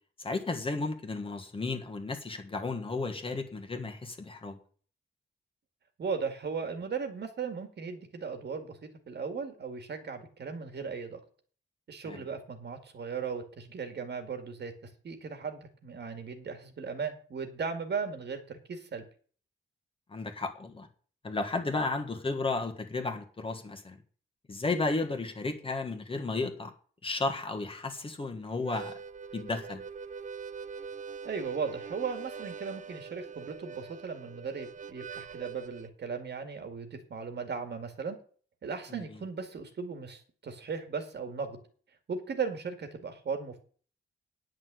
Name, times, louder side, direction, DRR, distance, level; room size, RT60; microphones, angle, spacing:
voice 1, 0.2-4.6 12.0-12.2 20.1-20.9 21.2-24.0 24.5-26.7 27.0-29.0 29.3-29.8 38.9-39.0, left 3 dB, 25° left, 4 dB, 1.6 m, -33 dB
voice 2, 6.0-8.8 9.1-11.2 11.9-14.7 15.0-19.0 31.2-38.2 38.6-41.6 42.1-43.6, right 5 dB, 60° right, 7 dB, 2.1 m, -37 dB
Harmonica, 28.5-35.9, right 6 dB, 40° right, 0.5 m, -43 dB
10.0 x 6.5 x 7.8 m, 0.43 s
wide cardioid pair, 175°, 20 cm